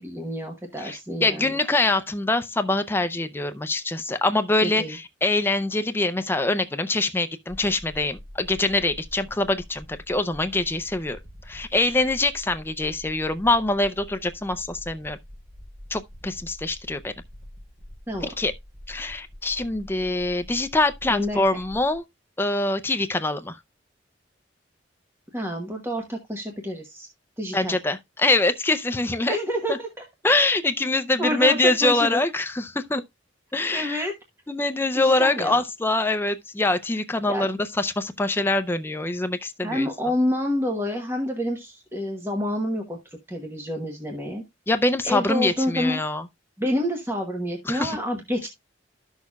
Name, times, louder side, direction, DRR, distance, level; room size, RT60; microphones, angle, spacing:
voice 1, 0.0-1.6 4.6-5.0 18.1-18.3 21.1-21.4 25.3-27.1 27.4-27.8 29.2-29.9 31.2-32.2 33.7-34.1 34.9-35.6 37.3-37.5 39.6-43.0 43.3-44.4 45.0-46.0 46.6-48.5, left 1 dB, 10° right, 1.1 m, -28 dB
voice 2, 0.8-11.2 11.5-15.2 15.9-17.1 18.4-18.5 18.9-22.0 22.4-23.6 27.5-29.4 29.7-29.8 30.2-33.0 33.5-34.1 34.5-39.9 44.7-46.3 47.7-48.0, left 2 dB, 10° left, 0.5 m, -24 dB
sound 1, 7.5-22.0, equal, 35° right, 7.0 m, -45 dB
12.5 x 6.4 x 2.3 m
head